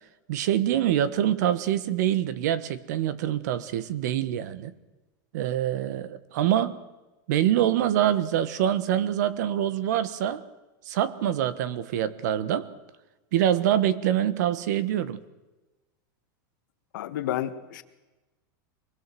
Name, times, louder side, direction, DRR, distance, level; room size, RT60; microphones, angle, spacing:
voice 1, 0.3-4.7 5.3-6.8 7.3-10.4 10.9-12.7 13.3-15.2, right 11 dB, 60° right, 16 dB, 1.3 m, -25 dB
voice 2, 16.9-17.8, left 12 dB, 65° left, 9 dB, 1.7 m, -31 dB
24.5 x 20.5 x 7.7 m, 1.1 s
supercardioid pair, 175°, 11 cm